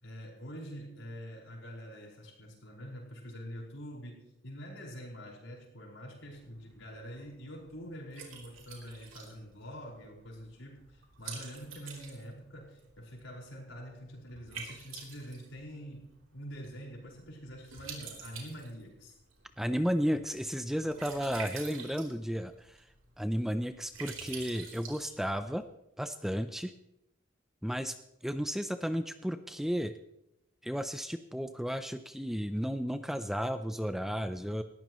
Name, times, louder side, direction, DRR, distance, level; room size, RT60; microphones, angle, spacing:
voice 1, 0.0-19.2, equal, 75° left, -1 dB, 5.1 m, -45 dB
Liquid, 6.2-25.6, right 5 dB, 90° right, 3.5 m, -49 dB
voice 2, 19.6-22.8 23.2-25.6 26.0-26.7 27.6-28.0 28.2-29.9 30.6-34.6, equal, ahead, 9 dB, 0.5 m, -33 dB
19.0 x 14.5 x 3.1 m, 0.85 s
head